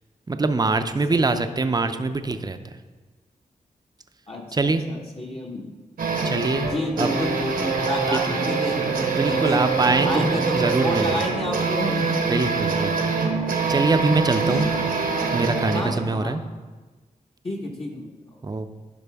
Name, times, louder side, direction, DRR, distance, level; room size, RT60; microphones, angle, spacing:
voice 1, 0.3-2.7 4.5-4.8 6.2-7.2 8.1-8.4 9.0-11.2 12.2-13.1 13.7-14.7 15.3-16.4 18.4-18.7, right 3 dB, 25° right, 9 dB, 0.6 m, -24 dB
voice 2, 1.1-1.5 4.3-5.7 6.7-9.6 10.0-12.1 14.4-14.8 15.7-16.5 17.4-18.4, left 1 dB, 40° left, -2 dB, 1.3 m, -30 dB
sound 1, 6.0-16.0, right 4 dB, 80° right, 1.1 m, -24 dB
11.0 x 4.9 x 3.5 m, 1.3 s
cardioid pair, 50°, 15 cm